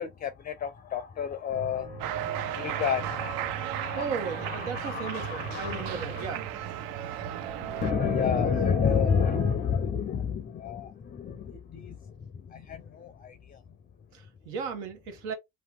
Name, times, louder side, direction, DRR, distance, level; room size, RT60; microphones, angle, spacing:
voice 1, 0.0-6.3 7.8-13.6, left 7 dB, 25° left, 0.5 m, -30 dB
sound 1, 1.5-9.6, right 6 dB, 25° right, 1.4 m, -39 dB
Cheering, 2.0-7.9, right 12 dB, 65° right, 0.6 m, -35 dB
voice 2, 3.9-6.4 14.1-15.3, right 5 dB, 80° right, 1.2 m, -35 dB
2.8 x 2.3 x 3.5 m
supercardioid pair, 90°, 39 cm